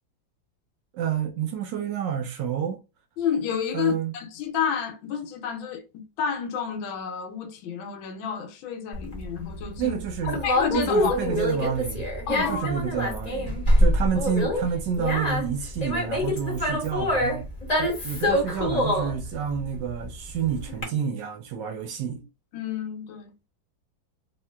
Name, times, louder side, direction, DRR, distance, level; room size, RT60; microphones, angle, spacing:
voice 1, 0.9-2.8 3.7-4.1 9.8-10.4 10.7-17.4 17.8-22.2, right 8 dB, 75° right, 1.2 m, -29 dB
voice 2, 3.2-9.9 10.2-11.4 12.3-12.7 22.5-23.3, left 7 dB, 85° left, 1.4 m, -30 dB
Conversation, 8.9-20.8, left 1 dB, 30° left, 0.7 m, -25 dB
3.0 x 2.8 x 2.2 m
omnidirectional pair, 2.1 m